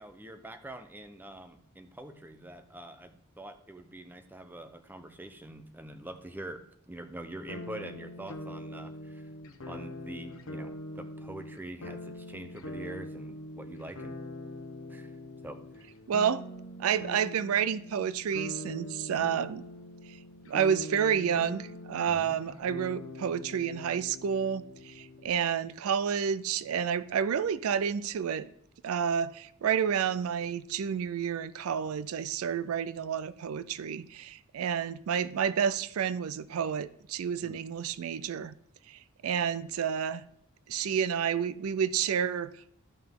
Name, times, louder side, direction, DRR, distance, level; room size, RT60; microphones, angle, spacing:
voice 1, 0.0-9.3 9.6-14.2 14.9-15.1 15.4-15.9 22.1-22.4 37.4-37.6, right 1 dB, 10° right, 0.7 m, -45 dB
sound 1, 7.5-25.3, left 1 dB, 70° left, 0.9 m, -43 dB
voice 2, 16.1-16.4 16.8-19.6 20.5-28.5 28.8-38.6 38.9-40.2 40.7-42.7, right 7 dB, 75° right, 0.4 m, -30 dB
13.0 x 5.8 x 3.6 m
head